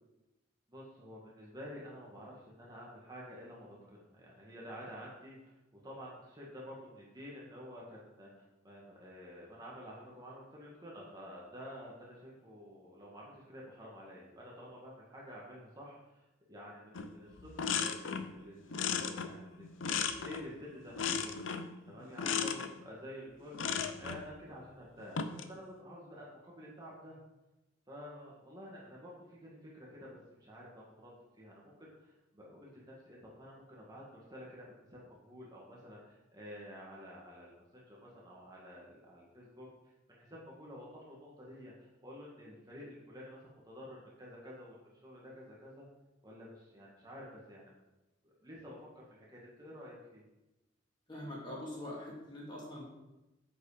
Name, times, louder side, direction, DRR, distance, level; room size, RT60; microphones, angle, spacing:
voice 1, 0.7-21.4 21.9-27.2 27.9-39.7 40.2-45.9 46.2-47.7 48.2-50.2, equal, 20° right, -5 dB, 1.8 m, -50 dB
sound 1, 16.9-17.1 17.4-18.3 18.7-20.5 21.0-21.7 22.2-22.7 23.5-24.2 25.0-25.5, left 6 dB, 80° left, 0.7 m, -35 dB
voice 2, 21.9-22.6 51.1-52.8, left 1 dB, 25° left, -5 dB, 3.0 m, -45 dB
8.4 x 7.1 x 5.0 m, 0.99 s
head